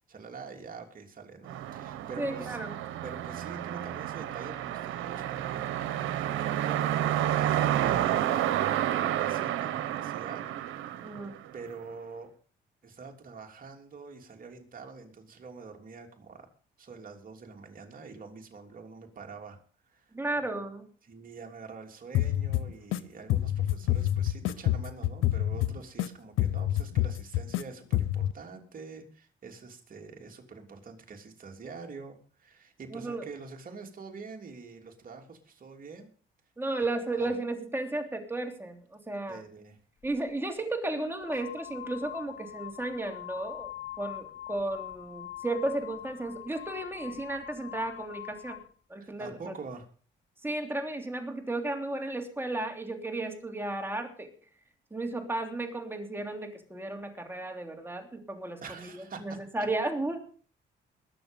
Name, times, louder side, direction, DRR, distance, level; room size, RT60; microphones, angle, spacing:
voice 1, 0.1-2.6 3.0-5.7 6.2-7.0 7.3-8.0 8.7-10.5 11.5-12.3 12.8-16.5 16.8-19.6 19.9-20.1 21.0-36.1 37.1-37.3 39.3-39.8 49.0-49.9 58.6-59.3, right 4 dB, 45° right, 3 dB, 3.2 m, -45 dB
sound 1, 1.5-11.7, right 12 dB, 85° right, 1.2 m, -30 dB
voice 2, 2.2-2.7 11.0-11.3 20.1-20.9 32.9-33.3 36.6-39.4 40.0-43.7 44.0-48.6 48.9-49.5 50.4-54.3 54.9-60.2, right 2 dB, 10° right, 4 dB, 3.1 m, -34 dB
sound 2, 22.1-23.0 23.3-26.1 26.4-27.6 27.9-28.3, left 13 dB, 85° left, 0.8 m, -27 dB
sound 3, 40.0-40.2 41.0-48.7, left 12 dB, 65° left, 2.1 m, -43 dB
21.0 x 7.0 x 5.3 m, 0.42 s
cardioid pair, 90°, 20 cm